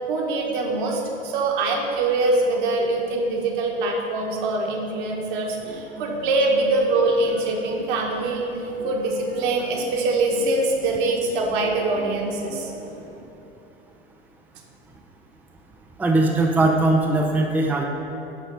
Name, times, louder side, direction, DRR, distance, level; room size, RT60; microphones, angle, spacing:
voice 1, 0.1-12.7, right 2 dB, 55° right, 0 dB, 1.6 m, -23 dB
sound 1, 5.6-13.2, right 2 dB, 80° right, 1.5 m, -41 dB
voice 2, 16.0-17.9, right 2 dB, 5° right, 1 dB, 0.5 m, -20 dB
11.0 x 4.1 x 5.7 m, 2.9 s
figure-of-eight pair, 85°, 31 cm